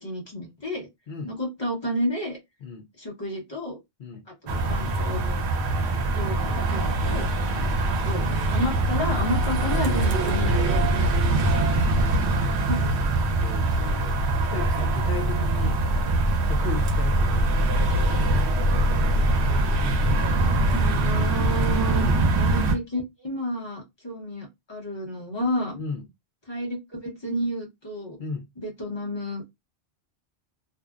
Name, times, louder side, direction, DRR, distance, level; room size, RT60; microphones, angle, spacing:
voice 1, 0.0-0.9 1.2-2.4 3.0-3.8 4.4-5.4 6.1-7.3 7.8-11.7 12.0-12.1 12.7-12.9 20.5-22.1 22.4-25.8 26.5-28.2 28.6-29.4, left 1 dB, 25° left, 1.0 m, -31 dB
sound 1, 4.5-22.8, right 2 dB, 85° right, 0.9 m, -23 dB
voice 2, 12.1-12.6 13.4-15.9 16.5-18.6 21.9-22.2 25.7-26.1 28.2-28.5, left 5 dB, 60° left, 0.6 m, -37 dB
2.6 x 2.0 x 2.3 m
omnidirectional pair, 1.1 m